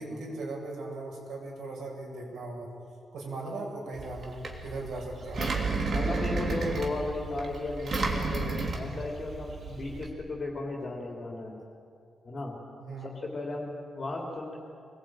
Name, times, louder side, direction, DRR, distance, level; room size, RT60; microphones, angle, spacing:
voice 1, 0.0-2.7 3.1-5.4 12.8-13.1, right 2 dB, 75° right, -2 dB, 7.6 m, -38 dB
Engine, 4.0-10.1, right 3 dB, 40° right, 3.0 m, -32 dB
voice 2, 5.9-11.6 12.2-12.6 13.0-14.6, left 2 dB, 30° left, -2 dB, 3.4 m, -35 dB
25.0 x 20.5 x 9.1 m, 2.4 s
wide cardioid pair, 175°, 0 cm